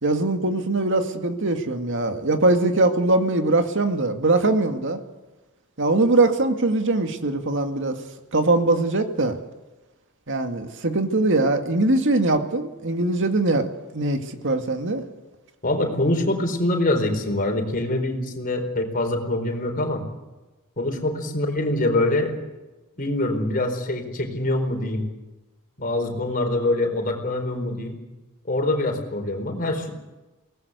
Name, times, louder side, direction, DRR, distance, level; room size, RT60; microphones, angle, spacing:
voice 1, 0.0-5.0 5.8-8.0 8.3-9.4 10.3-13.7 13.9-15.0, right 2 dB, 60° right, 6 dB, 2.2 m, -21 dB
voice 2, 15.6-20.0 20.8-22.4 23.0-25.1 25.8-28.0 28.5-29.9, left 1 dB, 40° left, 4 dB, 4.4 m, -24 dB
23.0 x 19.0 x 8.3 m, 1.1 s
head